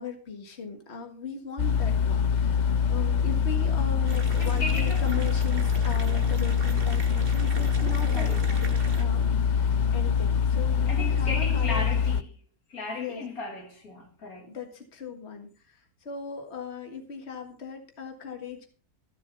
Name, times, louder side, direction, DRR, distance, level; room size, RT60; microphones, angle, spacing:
voice 1, 0.0-11.9 12.9-13.2 14.5-18.7, left 5 dB, 45° left, 2.0 m, -38 dB
sound 1, 1.6-12.2, left 7 dB, 85° left, 0.4 m, -24 dB
sound 2, 4.1-9.0, right 3 dB, 35° right, 1.9 m, -41 dB
voice 2, 4.4-5.1 8.0-8.5 10.9-12.3 12.7-14.5, left 2 dB, 70° left, 2.3 m, -35 dB
14.5 x 7.1 x 5.5 m
omnidirectional pair, 1.6 m